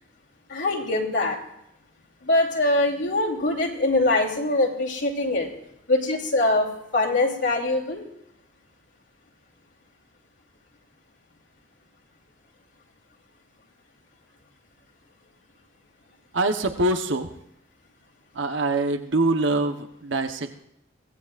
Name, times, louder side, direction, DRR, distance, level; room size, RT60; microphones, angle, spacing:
voice 1, 0.5-1.4 2.2-5.5 5.9-8.0, left 2 dB, 60° left, -1 dB, 2.7 m, -23 dB
voice 2, 16.3-17.3 18.3-20.6, right 2 dB, 70° right, 6 dB, 1.0 m, -24 dB
23.0 x 17.5 x 2.5 m, 0.79 s
head